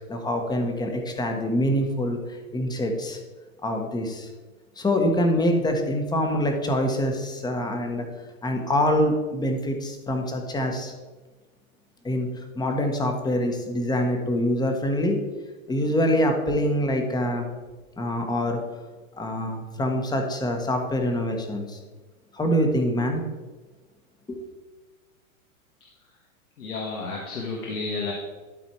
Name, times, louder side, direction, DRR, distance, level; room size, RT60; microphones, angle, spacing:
voice 1, 0.1-3.2 3.6-4.3 4.8-8.1 8.4-10.9 12.0-12.3 12.5-15.2 15.7-17.5 18.0-18.6 19.2-21.8 22.3-23.2 24.3-24.4, equal, 10° left, 4 dB, 1.1 m, -25 dB
voice 2, 26.6-28.1, left 3 dB, 85° left, -1 dB, 1.6 m, -31 dB
12.0 x 4.1 x 4.5 m, 1.3 s
hypercardioid pair, 120°, 43 cm